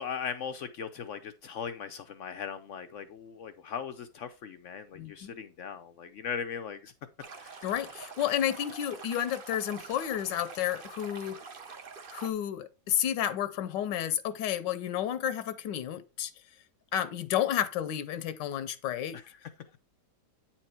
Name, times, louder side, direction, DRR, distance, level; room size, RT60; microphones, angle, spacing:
voice 1, 0.0-6.9 7.4-7.7 19.1-19.5, left 7 dB, 70° left, 0.7 m, -39 dB
voice 2, 4.9-5.3 7.6-11.4 12.1-16.3 16.9-19.2, left 10 dB, 85° left, 1.4 m, -31 dB
Stream, 7.2-12.3, right 5 dB, 40° right, 0.8 m, -46 dB
8.9 x 4.4 x 4.3 m
omnidirectional pair, 1.9 m